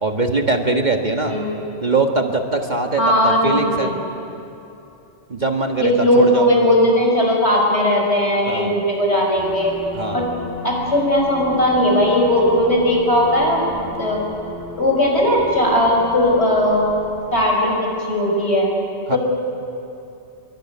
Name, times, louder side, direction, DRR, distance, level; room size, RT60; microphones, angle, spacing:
voice 1, 0.0-1.3 1.8-3.9 5.3-6.5 8.5-8.7 9.9-10.2 19.1-19.2, right 3 dB, 40° right, 3 dB, 1.7 m, -21 dB
voice 2, 1.3-1.6 3.0-4.0 5.8-9.7 10.1-10.3 10.6-14.2 14.8-16.9 17.3-18.7 19.1-19.2, left 1 dB, 65° left, -1 dB, 6.3 m, -18 dB
sound 1, 9.4-17.5, equal, 15° left, 5.2 m, -37 dB
25.0 x 23.5 x 9.8 m, 2.8 s
omnidirectional pair, 1.2 m